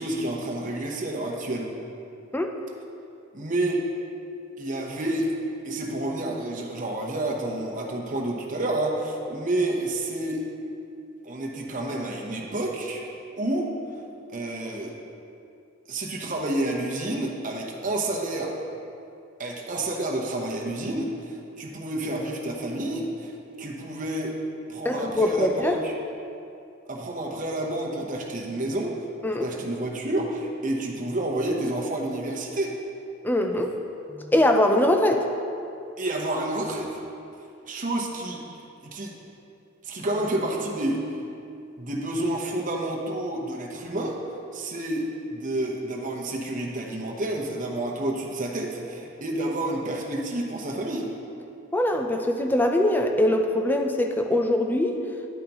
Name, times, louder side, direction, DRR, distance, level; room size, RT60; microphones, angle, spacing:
voice 1, 0.0-1.7 3.3-3.8 4.6-5.3 5.6-10.5 11.2-13.1 13.4-13.7 14.3-14.9 15.9-18.5 19.4-24.4 24.7-25.9 26.9-29.0 29.4-32.8 36.0-37.0 37.7-38.4 38.8-39.1 39.8-41.2 41.8-44.2 44.5-51.1, right 1 dB, 40° right, -1 dB, 0.9 m, -29 dB
voice 2, 24.8-25.8 29.2-29.5 33.2-33.7 34.1-35.3 51.7-55.0, left 1 dB, 10° left, 4 dB, 0.5 m, -22 dB
9.2 x 9.0 x 3.0 m, 2.6 s
head